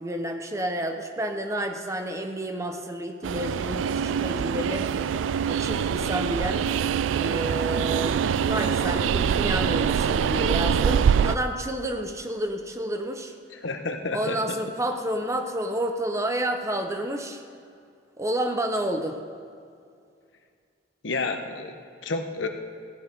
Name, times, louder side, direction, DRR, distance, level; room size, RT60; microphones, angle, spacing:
voice 1, 0.0-4.9 5.5-6.7 7.1-13.3 14.1-17.4 18.2-19.2, right 1 dB, 15° right, 6 dB, 0.8 m, -30 dB
Train, 3.2-11.4, right 7 dB, 90° right, 0.3 m, -24 dB
voice 2, 13.5-14.6 21.0-21.7 22.0-22.5, left 3 dB, 85° left, 5 dB, 1.1 m, -30 dB
15.5 x 9.1 x 5.4 m, 2.3 s
head